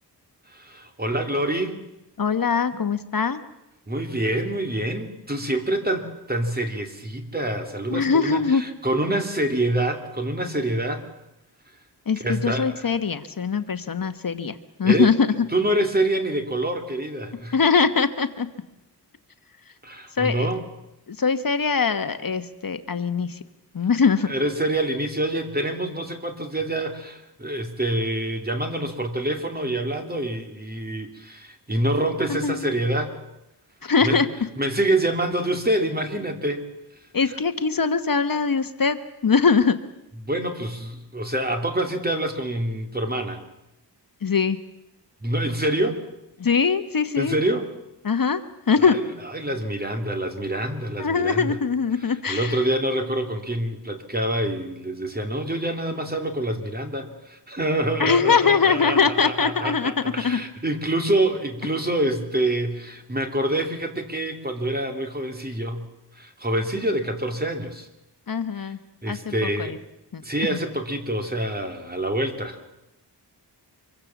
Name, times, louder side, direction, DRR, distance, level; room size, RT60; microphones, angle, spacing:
voice 1, 0.5-1.8 3.9-11.0 12.2-12.9 14.8-15.1 15.5-17.5 19.8-20.6 24.3-33.1 34.0-34.2 34.6-36.7 37.2-37.3 40.2-43.4 45.2-46.0 47.2-47.7 48.8-51.5 52.3-65.9 66.2-67.9 68.6-68.7 69.0-69.8 70.2-72.8, right 1 dB, 20° right, 5 dB, 2.9 m, -26 dB
voice 2, 2.2-3.4 7.9-8.6 12.1-15.3 17.5-18.5 20.1-20.5 21.1-23.4 23.7-24.3 32.3-32.7 33.8-34.3 37.1-39.0 39.2-39.8 44.2-44.6 46.4-47.4 48.0-48.4 48.7-49.0 51.0-52.6 58.0-59.9 60.2-60.4 68.3-68.8 69.1-69.8 70.1-70.2, left 5 dB, 55° left, 10 dB, 1.2 m, -22 dB
25.0 x 23.5 x 7.1 m, 0.89 s
wide cardioid pair, 125°, 41 cm